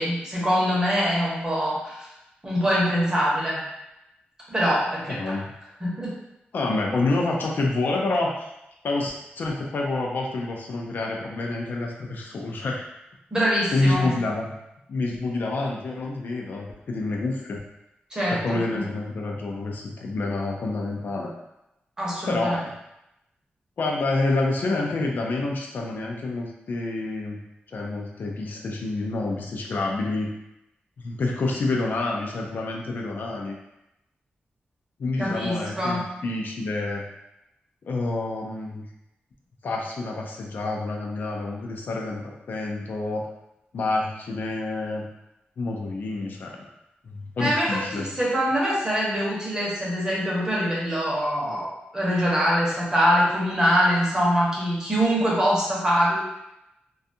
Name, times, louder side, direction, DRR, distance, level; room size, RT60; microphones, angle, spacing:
voice 1, 0.0-2.1 2.4-3.6 4.5-5.3 5.8-6.1 13.3-14.1 18.1-18.8 22.0-22.6 35.2-36.1 47.4-56.2, equal, 20° right, -6 dB, 0.8 m, -24 dB
voice 2, 5.1-5.4 6.5-8.5 8.8-12.8 13.7-14.5 14.9-17.6 18.3-21.3 22.2-22.7 23.8-27.4 27.7-30.3 31.0-33.6 35.0-37.1 37.9-38.9 39.6-43.3 43.7-45.1 45.6-46.7 47.0-48.1, left 2 dB, 60° left, 0 dB, 0.4 m, -28 dB
2.5 x 2.3 x 2.6 m, 0.88 s
wide cardioid pair, 155°, 4 cm